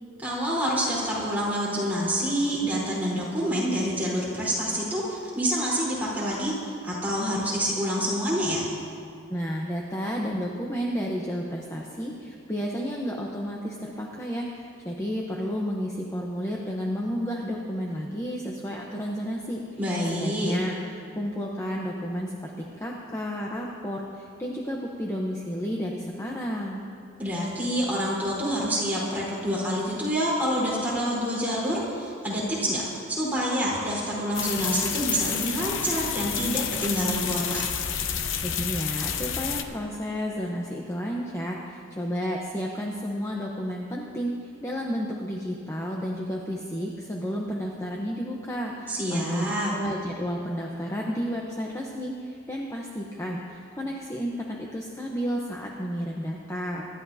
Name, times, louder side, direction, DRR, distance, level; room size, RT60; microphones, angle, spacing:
voice 1, 0.2-8.7 19.8-20.5 27.2-37.7 48.9-49.7, equal, 10° right, -8 dB, 4.1 m, -27 dB
voice 2, 9.3-19.6 20.1-20.8 21.1-26.9 38.4-56.9, equal, 15° left, -2 dB, 0.9 m, -32 dB
sound 1, 34.3-39.6, left 8 dB, 70° left, 0.8 m, -30 dB
25.0 x 12.5 x 2.8 m, 2.5 s
head